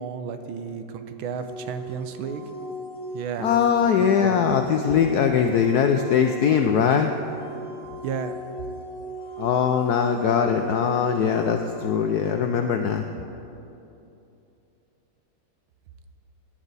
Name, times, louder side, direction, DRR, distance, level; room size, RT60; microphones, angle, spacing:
voice 1, 0.0-2.4 3.1-3.5 4.2-4.4 8.0-8.4, right 7 dB, 80° right, 8 dB, 1.5 m, -32 dB
sound 1, 1.3-11.9, right 1 dB, 25° left, 1.6 m, -37 dB
voice 2, 3.4-7.1 9.4-13.0, left 7 dB, 80° left, 5 dB, 0.8 m, -21 dB
17.5 x 10.0 x 4.0 m, 2.8 s
omnidirectional pair, 2.2 m